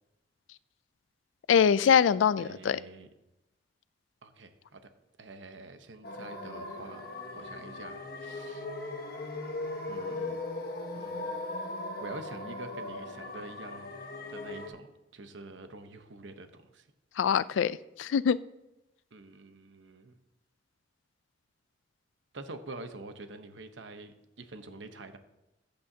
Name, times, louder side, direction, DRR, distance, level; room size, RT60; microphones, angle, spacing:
voice 1, 1.5-2.8 17.2-18.4, left 7 dB, 85° left, 18 dB, 0.3 m, -24 dB
voice 2, 2.4-3.1 4.2-4.8 5.2-8.7 9.9-10.4 10.9-11.4 12.0-14.0 14.3-14.9 15.1-16.5 16.7-16.9 19.1-20.2 22.3-25.2, right 2 dB, 75° right, 8 dB, 1.0 m, -46 dB
sound 1, 6.0-14.7, left 2 dB, 55° left, 1.3 m, -38 dB
14.5 x 8.5 x 2.8 m, 0.94 s
head